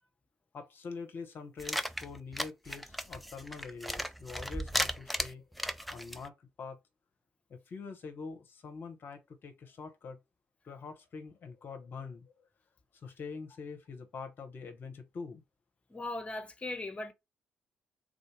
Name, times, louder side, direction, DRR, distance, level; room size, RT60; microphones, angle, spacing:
voice 1, 0.5-5.5 5.9-6.8 7.5-10.2 10.6-12.3 12.9-15.4, left 5 dB, 50° left, 0.9 m, -44 dB
sound 1, 1.6-6.3, equal, ahead, 0.5 m, -36 dB
voice 2, 15.9-17.1, left 2 dB, 25° left, 1.0 m, -38 dB
3.7 x 2.6 x 4.7 m
figure-of-eight pair, 40°, 5 cm